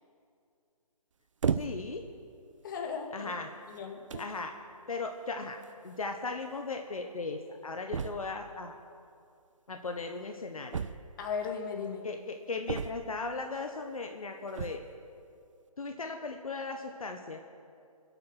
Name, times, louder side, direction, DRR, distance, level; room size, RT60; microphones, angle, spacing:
sound 1, 1.4-2.0 2.8-3.0 3.8-3.9 4.1-4.4 5.6-5.7 5.9-6.0 6.3-6.4 7.9-8.4 10.7-11.4 12.7-13.3 14.5-15.0, right 6 dB, 55° right, 0.6 m, -34 dB
voice 1, 1.5-2.0 3.1-3.5 4.2-4.5 4.9-8.7 9.7-10.8 12.0-14.8 15.8-17.4, left 3 dB, 65° left, 4 dB, 1.3 m, -37 dB
voice 2, 2.6-3.3 3.7-4.4 11.2-12.1, left 6 dB, 35° left, 2 dB, 2.1 m, -37 dB
25.5 x 8.7 x 5.9 m, 2.4 s
figure-of-eight pair, 150°, 19 cm